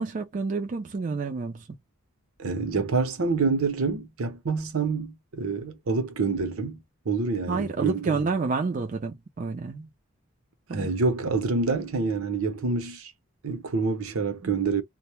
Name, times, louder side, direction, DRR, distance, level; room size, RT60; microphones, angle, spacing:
voice 1, 0.0-1.7 7.5-9.9 10.7-10.9 14.4-14.6, right 4 dB, 35° right, 0.3 m, -29 dB
voice 2, 2.4-8.2 10.7-13.1 13.4-14.8, right 4 dB, 75° right, 0.7 m, -27 dB
2.1 x 2.0 x 2.9 m
head